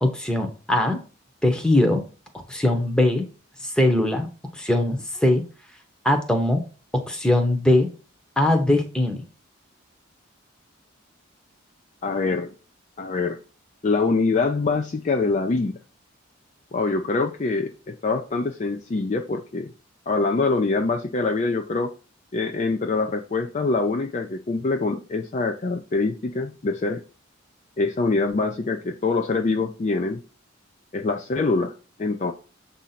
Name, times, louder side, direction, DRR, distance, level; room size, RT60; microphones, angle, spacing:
voice 1, 0.0-1.0 1.4-2.0 2.5-3.2 3.6-4.3 4.6-5.4 6.0-6.6 7.1-7.9 8.4-9.2, left 1 dB, 5° left, 0.8 m, -21 dB
voice 2, 12.0-12.5 13.0-13.4 13.8-15.8 16.7-19.7 20.1-21.9 22.3-27.0 27.8-30.2 30.9-31.7 32.0-32.3, left 3 dB, 35° left, 0.4 m, -24 dB
7.2 x 2.7 x 5.7 m
head